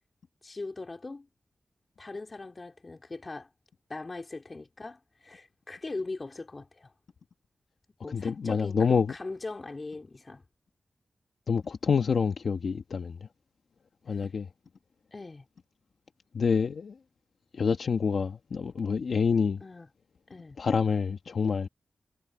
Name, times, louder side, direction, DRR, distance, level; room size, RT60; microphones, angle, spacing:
voice 1, 0.4-1.3 2.0-3.5 3.9-6.9 8.0-10.4 14.2-14.3 15.1-15.4 19.6-19.9 20.3-20.6, left 3 dB, 40° left, 4.2 m, -40 dB
voice 2, 8.1-9.1 11.5-13.2 14.1-14.5 16.3-16.9 17.5-19.6 20.6-21.7, left 5 dB, 70° left, 1.5 m, -27 dB
cardioid pair, 60°, 0 cm